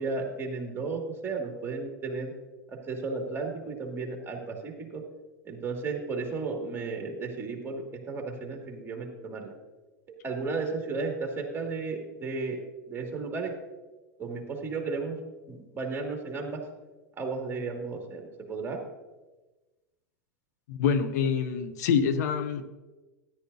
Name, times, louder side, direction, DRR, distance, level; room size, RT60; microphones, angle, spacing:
voice 1, 0.0-2.3 2.7-5.0 5.4-9.5 10.2-13.5 14.2-15.2 15.5-16.7 17.2-18.8, right 4 dB, 25° right, 1 dB, 2.3 m, -34 dB
voice 2, 20.7-22.6, left 7 dB, 75° left, 11 dB, 0.7 m, -26 dB
13.0 x 10.5 x 2.7 m, 1.2 s
hypercardioid pair, 100°, 9 cm